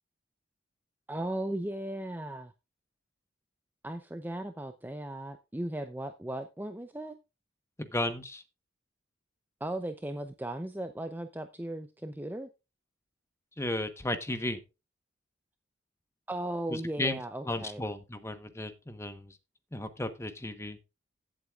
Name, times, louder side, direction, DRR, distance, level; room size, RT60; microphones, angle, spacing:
voice 1, 1.1-2.5 3.8-7.2 9.6-12.5 16.3-17.9, right 1 dB, 10° right, 0.6 m, -37 dB
voice 2, 7.8-8.4 13.6-14.6 16.7-17.2 17.4-19.4 19.7-20.8, left 1 dB, 15° left, 1.1 m, -34 dB
15.5 x 8.0 x 2.4 m
head